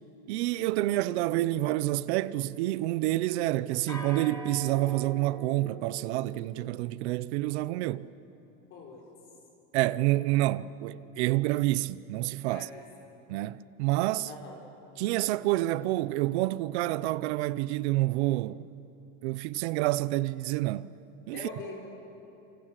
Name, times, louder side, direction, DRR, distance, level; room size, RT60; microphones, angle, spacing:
voice 1, 0.3-8.1 9.7-12.7 13.3-14.3 15.0-18.7 19.2-20.9 21.3-21.4, right 17 dB, 60° right, 0.8 m, -28 dB
sound 1, 1.5-2.7 3.9-6.5, left 1 dB, 10° left, 3.0 m, -43 dB
voice 2, 8.7-9.0 12.5-12.8 14.3-14.6 21.3-21.7, left 4 dB, 30° left, 4.1 m, -42 dB
28.5 x 27.0 x 7.6 m
supercardioid pair, 175°, 38 cm